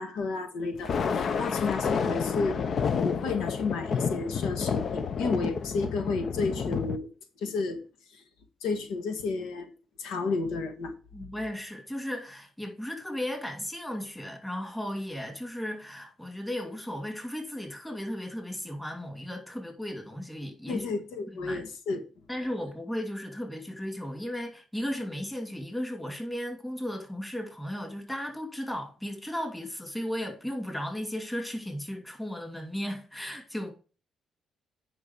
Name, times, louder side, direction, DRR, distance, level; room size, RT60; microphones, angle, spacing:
voice 1, 0.0-2.6 3.0-7.1 7.4-7.8 8.1-8.2 8.6-9.7 10.0-10.9 20.7-22.0, left 4 dB, 90° left, 1.5 m, -31 dB
Thunder, 0.7-7.0, left 6 dB, 55° left, 0.7 m, -30 dB
voice 2, 11.1-20.9 21.3-21.6 22.3-33.7, equal, 10° left, 2.8 m, -35 dB
9.5 x 5.5 x 4.7 m
cardioid pair, 90°, 0 cm